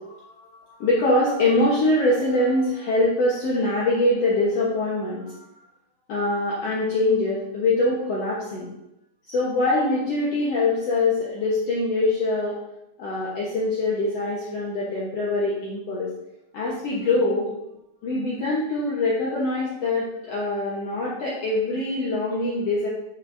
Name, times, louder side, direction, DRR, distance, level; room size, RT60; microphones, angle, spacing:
voice 1, 0.0-5.4 6.1-8.7 9.3-12.6 13.0-16.1 16.5-17.5 18.0-22.9, left 2 dB, 60° left, -5 dB, 2.1 m, -23 dB
11.0 x 6.1 x 2.7 m, 0.86 s
omnidirectional pair, 3.6 m